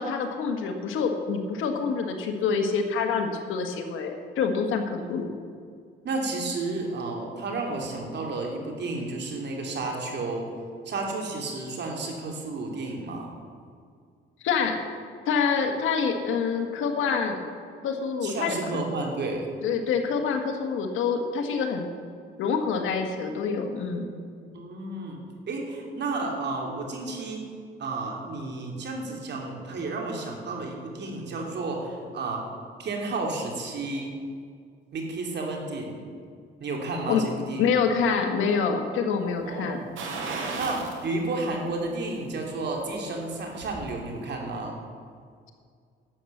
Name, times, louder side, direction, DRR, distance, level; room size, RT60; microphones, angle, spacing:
voice 1, 0.0-5.3 14.4-14.8 15.2-17.4 17.8-18.6 19.6-21.9 22.4-24.1 37.1-37.2 37.6-39.8, left 5 dB, 85° left, 5 dB, 1.6 m, -26 dB
voice 2, 6.0-10.5 10.8-13.3 18.2-19.5 24.5-25.2 25.5-27.4 27.8-32.4 32.8-34.1 34.9-36.0 36.6-37.6 39.4-40.0 40.5-44.8, right 3 dB, 60° right, 1 dB, 2.9 m, -32 dB
sound 1, 40.0-41.0 41.4-41.5 43.0-43.8 44.2-44.3, right 3 dB, 80° right, 2.4 m, -34 dB
12.0 x 7.9 x 7.2 m, 2.2 s
cardioid pair, 90°, 20 cm